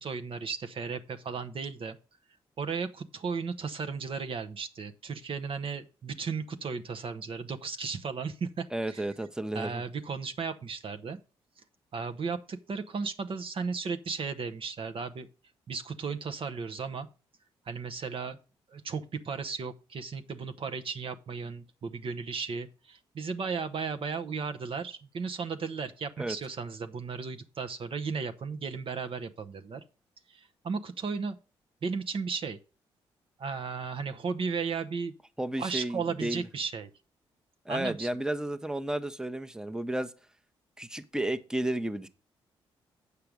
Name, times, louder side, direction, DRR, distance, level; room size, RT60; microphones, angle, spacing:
voice 1, 0.0-2.0 2.6-9.0 9.5-11.2 11.9-15.3 15.7-17.1 17.7-18.4 18.7-29.8 30.3-31.4 31.8-32.6 33.4-35.1 35.6-36.9 37.7-38.1, right 5 dB, 50° right, 0.9 m, -35 dB
voice 2, 8.7-9.8 26.2-26.4 35.4-36.4 37.7-40.1 40.8-42.1, right 1 dB, 5° right, 0.9 m, -32 dB
8.3 x 5.8 x 5.0 m
hypercardioid pair, 50°, 11 cm